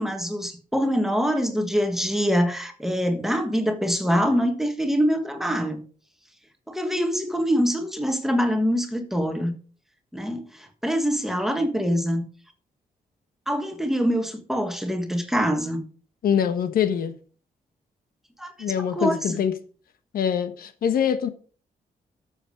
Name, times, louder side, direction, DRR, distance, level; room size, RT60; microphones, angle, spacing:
voice 1, 0.0-5.8 6.7-9.5 10.1-12.2 13.5-15.8 18.4-18.5 18.9-19.4, equal, ahead, 1.5 m, -24 dB
voice 2, 16.2-17.1 18.6-19.5 20.1-21.3, left 8 dB, 80° left, 1.4 m, -24 dB
13.0 x 7.3 x 5.2 m
wide cardioid pair, 180°, 15 cm